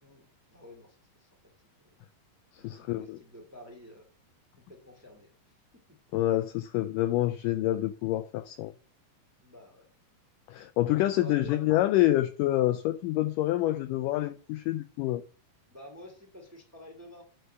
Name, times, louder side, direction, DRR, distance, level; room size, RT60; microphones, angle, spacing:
voice 1, 0.5-1.3 1.8-1.9 2.6-4.1 4.7-5.3 9.4-9.8 11.1-11.6 15.7-17.2, equal, 5° right, 1.1 m, -49 dB
voice 2, 2.5-3.2 6.1-8.7 10.5-15.2, left 15 dB, 85° left, 1.9 m, -27 dB
8.0 x 4.6 x 6.7 m
omnidirectional pair, 4.3 m